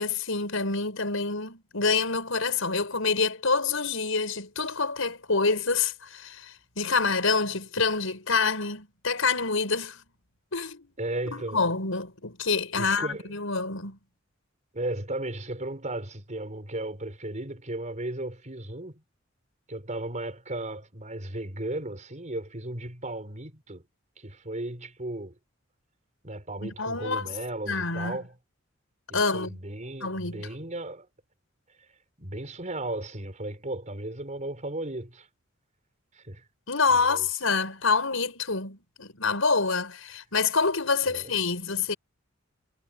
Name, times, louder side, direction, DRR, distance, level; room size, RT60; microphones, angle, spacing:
voice 1, 0.0-10.0 10.5-10.9 11.3-14.0 26.6-27.4 27.7-28.2 29.1-29.6 30.0-30.5 36.7-41.9, left 4 dB, 85° left, 5.5 m, -27 dB
voice 2, 11.0-11.6 12.7-13.3 14.7-19.0 19.7-23.8 24.2-25.4 26.2-28.3 29.1-31.1 32.2-35.3 36.1-36.4 36.9-37.3 41.1-41.3, right 1 dB, 40° right, 4.6 m, -35 dB
head